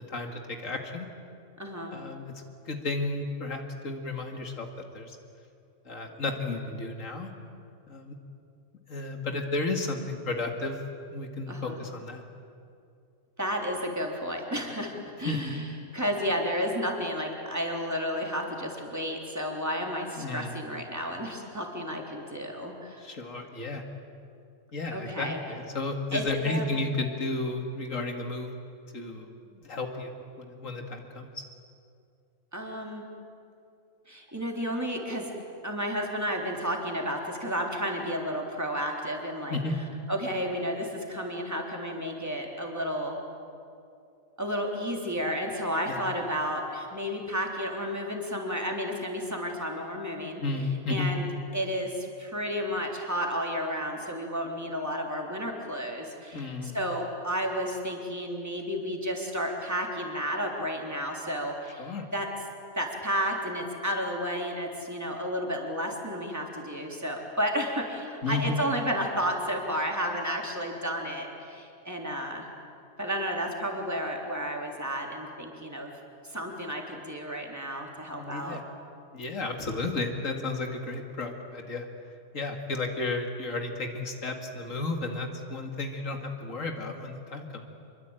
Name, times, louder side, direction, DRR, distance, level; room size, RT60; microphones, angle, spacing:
voice 1, 0.1-1.1 1.9-4.7 4.9-5.2 5.8-7.3 7.9-8.1 8.9-10.8 11.1-12.2 15.2-15.4 20.2-20.5 23.0-23.8 24.7-28.5 28.9-31.4 39.5-39.8 45.9-46.0 50.4-51.1 56.3-56.8 61.8-62.1 68.2-68.6 78.1-78.6 79.1-81.9 82.3-87.7, left 3 dB, 85° left, 4 dB, 2.5 m, -33 dB
voice 2, 1.6-1.9 11.5-11.8 13.4-15.6 15.9-23.0 24.9-25.4 26.1-26.6 32.5-33.0 34.1-35.3 35.6-39.6 40.1-43.2 44.4-50.4 50.9-51.2 51.5-62.3 62.8-72.5 73.0-75.9 76.2-78.6, equal, 15° right, 0 dB, 3.6 m, -32 dB
26.5 x 23.0 x 9.0 m, 2.5 s
omnidirectional pair, 1.3 m